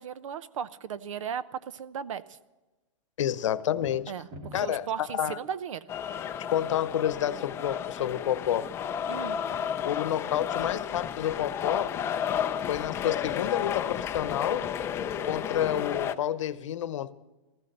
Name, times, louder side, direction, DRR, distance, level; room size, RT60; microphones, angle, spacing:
voice 1, 0.0-2.4 4.1-5.9 9.1-9.4, right 8 dB, 70° right, 0.8 m, -36 dB
voice 2, 3.2-4.1 4.5-5.4 6.5-8.7 9.8-12.0 12.7-14.7 15.2-17.1, left 11 dB, 65° left, 0.9 m, -29 dB
sound 1, 3.6-4.9, right 1 dB, 35° right, 2.8 m, -43 dB
sound 2, 5.9-16.1, left 9 dB, 15° left, 0.5 m, -32 dB
14.5 x 13.5 x 6.7 m
hypercardioid pair, 155°, 17 cm